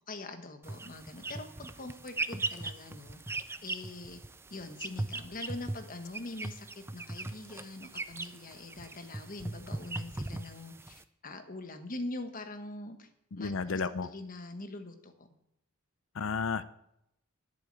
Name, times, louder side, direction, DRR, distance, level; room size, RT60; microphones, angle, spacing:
voice 1, 0.1-4.2 4.5-13.1 13.4-15.3, left 2 dB, 40° left, 7 dB, 1.3 m, -43 dB
sound 1, 0.6-11.0, right 2 dB, 10° right, 0.4 m, -39 dB
voice 2, 13.4-14.1 16.2-16.7, left 5 dB, 60° left, 15 dB, 0.5 m, -32 dB
11.0 x 8.5 x 7.6 m, 0.80 s
head